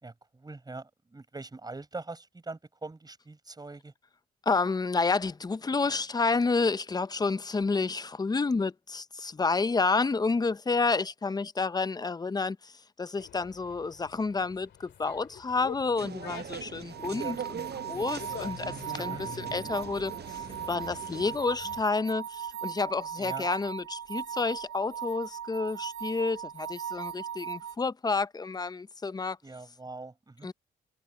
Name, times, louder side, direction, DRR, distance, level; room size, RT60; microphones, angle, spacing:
voice 1, 0.0-3.9 19.0-19.2 23.2-23.5 29.4-30.5, right 3 dB, 20° right, 6.0 m, -43 dB
voice 2, 4.5-29.4 30.4-30.5, left 4 dB, 20° left, 0.6 m, -30 dB
Dog, 13.2-21.8, left 9 dB, 65° left, 2.6 m, -47 dB
sound 1, 16.0-21.4, right 8 dB, 55° right, 7.8 m, -41 dB
sound 2, 16.9-27.7, right 9 dB, 80° right, 1.6 m, -38 dB
cardioid pair, 90°, 20 cm